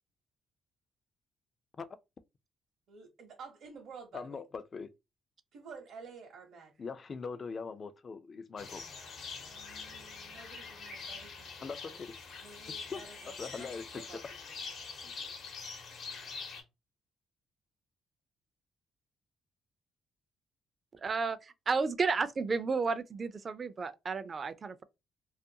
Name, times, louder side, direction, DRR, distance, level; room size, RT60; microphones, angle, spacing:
voice 1, 2.9-4.4 5.5-6.7 9.4-12.0 12.4-14.2, right 5 dB, 70° right, 0.7 m, -51 dB
voice 2, 4.1-4.9 6.8-8.8 11.6-12.1 12.9-13.0 13.4-14.2 15.0-15.1, left 5 dB, 40° left, 0.3 m, -41 dB
sound 1, 8.6-16.6, left 4 dB, 70° left, 0.8 m, -44 dB
voice 3, 20.9-24.8, right 4 dB, 40° right, 0.3 m, -32 dB
2.4 x 2.2 x 2.7 m
cardioid pair, 90°, 0 cm